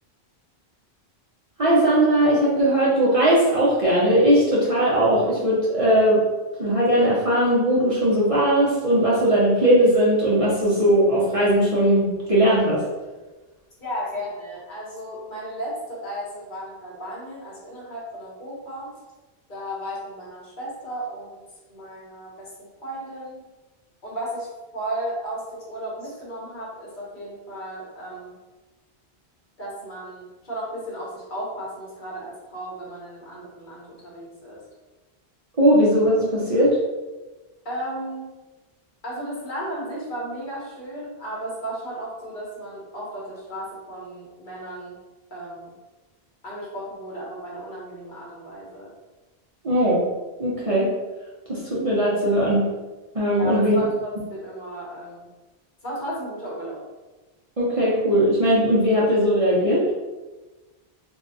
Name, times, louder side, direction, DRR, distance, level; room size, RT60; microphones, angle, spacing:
voice 1, 1.6-6.2 6.6-12.8 35.5-36.8 49.6-50.0 50.4-50.9 51.5-52.6 53.1-53.8 57.6-59.8, right 1 dB, 35° right, -8 dB, 0.7 m, -19 dB
voice 2, 13.8-18.9 19.5-21.4 21.7-22.5 22.8-23.4 24.0-28.4 29.6-34.6 37.6-38.2 39.0-45.0 45.3-45.7 46.4-48.9 53.3-55.2 55.8-56.8, right 1 dB, 50° left, -5 dB, 1.1 m, -34 dB
2.6 x 2.2 x 4.0 m, 1.2 s
omnidirectional pair, 1.1 m